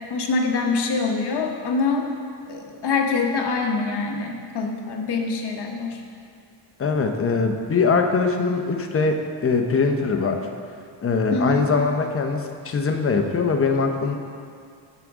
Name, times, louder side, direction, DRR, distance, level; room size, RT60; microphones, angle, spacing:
voice 1, 0.1-2.1 2.5-6.0 11.3-11.6, left 4 dB, 65° left, 2 dB, 1.1 m, -24 dB
voice 2, 6.8-10.5 11.0-14.2, left 4 dB, 30° left, 4 dB, 0.7 m, -22 dB
13.0 x 4.9 x 3.6 m, 2.3 s
cardioid pair, 115°, 43 cm